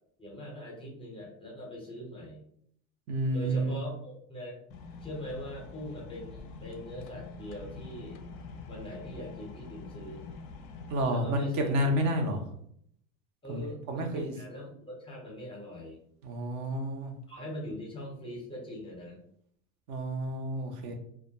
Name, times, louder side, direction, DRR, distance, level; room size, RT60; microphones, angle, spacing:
voice 1, 0.2-2.4 3.3-4.6 5.0-8.2 8.7-10.3 11.1-11.8 13.4-16.0 17.3-19.2, equal, 15° left, -2 dB, 0.7 m, -42 dB
voice 2, 3.1-3.7 10.9-12.4 13.5-13.6 13.9-14.3 16.2-17.1 19.9-20.9, equal, 45° right, 4 dB, 0.6 m, -30 dB
sound 1, 4.7-11.0, left 4 dB, 55° left, 0.4 m, -45 dB
2.2 x 2.1 x 2.8 m, 0.68 s
hypercardioid pair, 100°, 41 cm